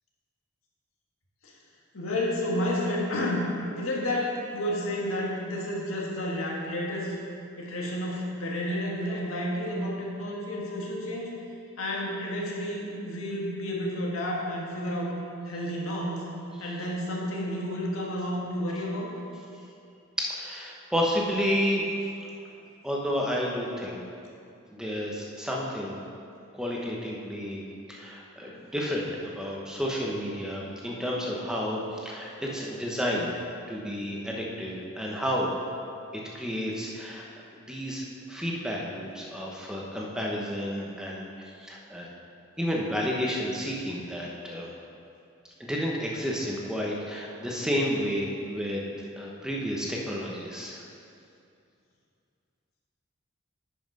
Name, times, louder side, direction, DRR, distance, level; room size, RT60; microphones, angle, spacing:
voice 1, 1.9-3.5 3.8-7.2 7.6-11.3 11.8-15.2 15.4-16.3 16.6-19.1 28.4-28.6, left 1 dB, 80° left, -3 dB, 1.8 m, -31 dB
voice 2, 20.2-21.8 22.8-24.0 24.7-26.0 26.5-33.3 33.7-35.5 36.3-37.3 37.5-41.3 41.6-42.1 42.6-44.7 45.6-48.8 49.2-50.8, equal, 5° right, -3 dB, 1.0 m, -31 dB
9.5 x 5.8 x 5.4 m, 2.5 s
head